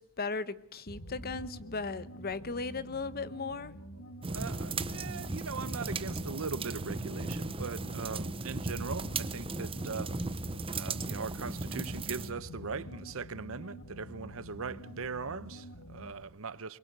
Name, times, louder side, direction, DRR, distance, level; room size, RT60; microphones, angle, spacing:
voice 1, 0.0-3.7, left 4 dB, 45° left, 1.0 m, -37 dB
sound 1, 0.9-16.2, equal, 90° left, 2.5 m, -47 dB
sound 2, 4.2-12.3, right 3 dB, 25° right, 0.8 m, -36 dB
voice 2, 4.3-10.3 10.7-16.8, right 4 dB, 70° right, 0.8 m, -40 dB
24.5 x 22.5 x 6.8 m
head